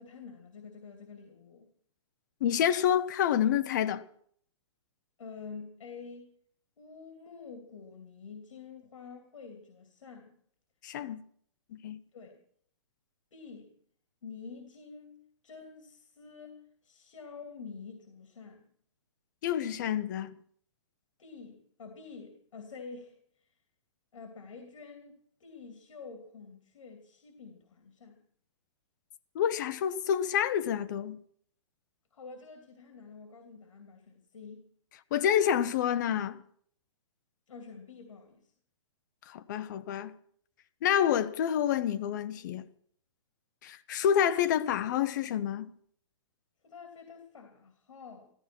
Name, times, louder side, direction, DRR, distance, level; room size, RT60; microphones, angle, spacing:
voice 1, 0.0-1.7 5.2-6.3 6.8-10.3 12.1-12.4 13.3-13.7 14.2-18.6 21.2-23.6 24.1-25.1 25.4-28.2 32.1-34.7 37.5-38.5 46.6-48.3, left 5 dB, 80° left, 2.9 m, -48 dB
voice 2, 2.4-4.1 10.8-11.2 11.7-12.0 19.4-20.4 29.3-31.2 35.1-36.4 39.3-40.1 40.8-42.7 43.6-45.7, left 9 dB, 35° left, 0.8 m, -28 dB
15.0 x 14.0 x 6.1 m
hypercardioid pair, 170°, 16 cm